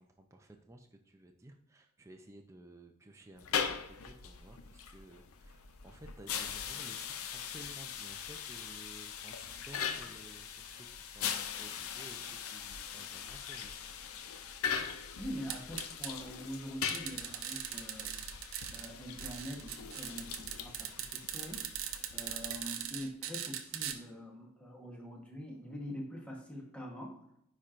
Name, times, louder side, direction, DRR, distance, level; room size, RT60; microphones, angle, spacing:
voice 1, 0.0-13.8, right 1 dB, 15° right, 3 dB, 0.4 m, -55 dB
sound 1, 3.4-23.0, left 7 dB, 70° left, 0.5 m, -41 dB
voice 2, 15.2-18.2 18.7-21.6 22.1-27.2, equal, 5° left, -1 dB, 1.1 m, -44 dB
sound 2, 15.5-16.1 16.8-18.9 19.2-23.9, right 10 dB, 65° right, 0.6 m, -40 dB
9.7 x 4.3 x 2.5 m, 0.75 s
head